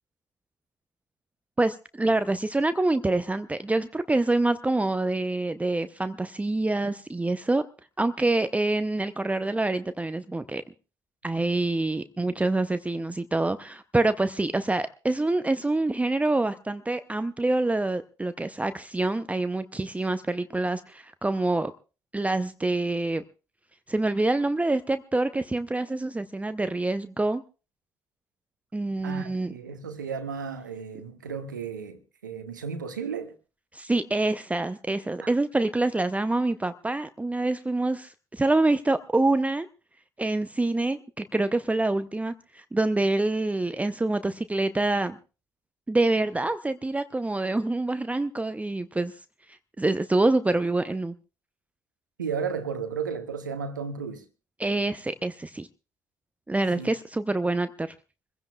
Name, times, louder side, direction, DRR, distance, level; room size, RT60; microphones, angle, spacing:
voice 1, 1.6-7.6 8.0-10.6 11.2-21.7 22.1-23.2 23.9-27.4 28.7-29.5 33.7-39.7 40.2-45.2 45.9-49.2 49.5-51.1 54.6-55.7 56.5-57.9, right 2 dB, 15° right, 0.6 m, -26 dB
voice 2, 29.0-33.3 35.2-35.3 52.2-54.3 56.8-56.9, right 6 dB, 90° right, 1.0 m, -34 dB
26.0 x 16.0 x 2.3 m
hypercardioid pair, 50°, 10 cm